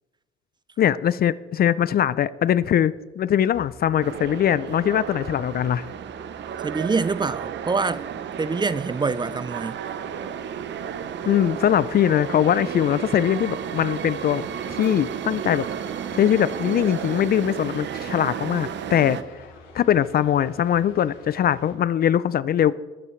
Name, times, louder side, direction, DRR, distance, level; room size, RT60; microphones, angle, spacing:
voice 1, 0.8-5.9 11.3-15.6 16.1-19.2 19.7-22.8, left 10 dB, 50° left, 0.4 m, -21 dB
sound 1, 3.5-21.7, left 3 dB, 80° left, 3.1 m, -49 dB
sound 2, 4.0-19.2, right 8 dB, 65° right, 0.7 m, -33 dB
voice 2, 6.6-8.0 8.4-9.8, right 4 dB, 20° right, 0.4 m, -25 dB
20.5 x 8.9 x 3.2 m
cardioid pair, 90°, 20 cm